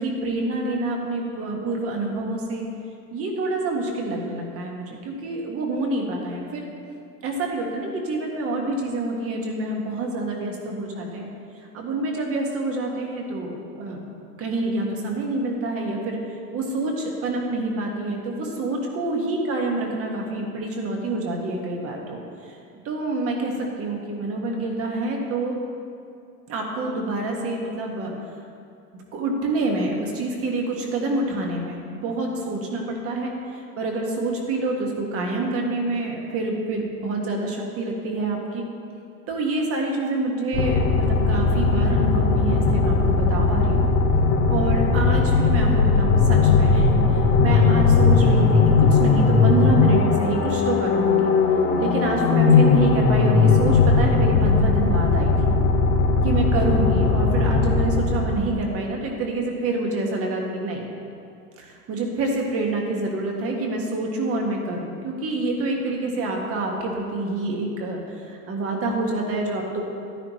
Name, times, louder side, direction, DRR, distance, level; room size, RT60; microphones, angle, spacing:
voice 1, 0.0-2.7 3.1-6.6 7.2-11.3 11.6-14.0 14.4-22.6 22.8-25.6 26.5-28.1 29.1-38.7 39.3-43.8 44.5-51.3 51.8-55.5 56.2-60.9 61.6-69.8, right 2 dB, 30° right, 0 dB, 1.6 m, -27 dB
sound 1, 40.5-58.6, left 4 dB, 25° left, 0.8 m, -18 dB
12.0 x 9.9 x 3.1 m, 2.4 s
hypercardioid pair, 125°, 48 cm